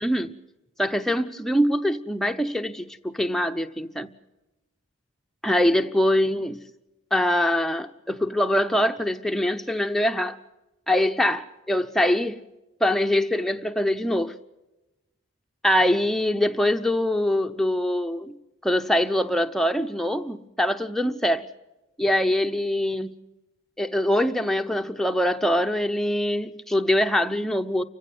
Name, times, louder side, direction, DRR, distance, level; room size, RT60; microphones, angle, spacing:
voice 1, 0.0-0.4 0.8-4.1 5.4-6.6 7.1-10.4 10.9-12.4 12.8-14.3 15.6-18.4 18.6-21.4 22.0-23.1 23.8-27.8, left 1 dB, ahead, 0.7 m, -23 dB
29.5 x 16.0 x 7.8 m
head